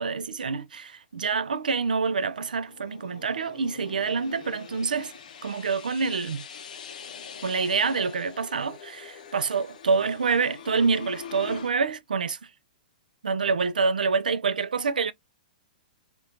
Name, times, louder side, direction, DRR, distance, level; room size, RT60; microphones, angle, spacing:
voice 1, 0.0-5.1 5.4-6.5 7.4-12.4 13.2-15.1, right 5 dB, 85° right, 0.3 m, -27 dB
sound 1, 1.6-11.7, left 7 dB, 70° left, 0.5 m, -44 dB
2.4 x 2.2 x 2.8 m
hypercardioid pair, 120°, 4 cm